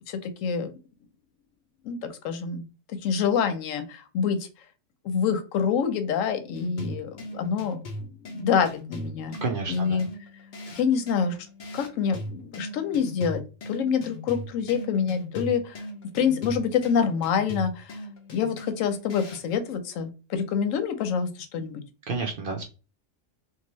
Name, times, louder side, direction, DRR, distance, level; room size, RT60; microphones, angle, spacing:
voice 1, 0.1-0.7 1.8-2.6 3.0-4.5 5.0-8.1 8.3-9.3 9.7-10.1 10.7-11.4 11.7-15.8 16.1-18.0 18.3-21.8, left 7 dB, 90° left, 9 dB, 1.0 m, -26 dB
sound 1, 6.5-19.5, left 1 dB, 50° left, 0.6 m, -39 dB
voice 2, 9.4-10.0 22.1-22.7, right 4 dB, 60° right, 2 dB, 0.6 m, -30 dB
2.7 x 2.3 x 3.0 m, 0.33 s
omnidirectional pair, 1.3 m